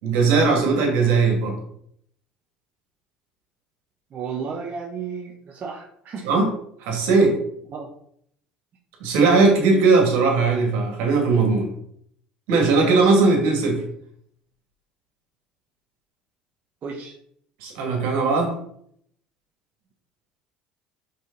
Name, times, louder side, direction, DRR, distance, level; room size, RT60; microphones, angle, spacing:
voice 1, 0.0-1.6 6.2-6.5 6.8-7.4 9.0-11.7 12.5-13.8 17.6-18.5, right 4 dB, 70° right, 1 dB, 2.3 m, -19 dB
voice 2, 4.1-6.3 7.7-7.9 16.8-17.1, right 5 dB, 45° right, -1 dB, 1.2 m, -33 dB
5.3 x 5.2 x 4.0 m, 0.68 s
hypercardioid pair, 65°, 4 cm